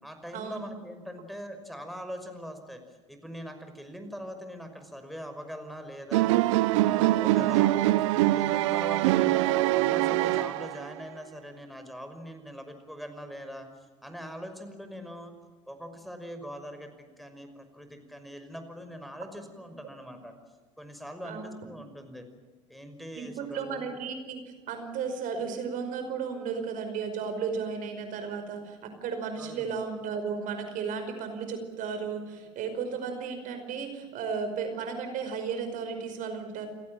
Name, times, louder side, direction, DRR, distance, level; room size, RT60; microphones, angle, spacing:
voice 1, 0.0-2.8 3.1-6.3 6.8-7.8 8.3-13.7 14.0-15.3 15.7-20.3 20.8-22.3 22.7-23.8 29.4-29.8, equal, ahead, 6 dB, 5.7 m, -42 dB
sound 1, 6.1-11.0, right 16 dB, 75° right, 0.9 m, -24 dB
voice 2, 23.2-24.4 24.7-36.7, right 6 dB, 60° right, 7 dB, 5.2 m, -34 dB
29.5 x 17.5 x 9.1 m, 1.4 s
hypercardioid pair, 70°, 16 cm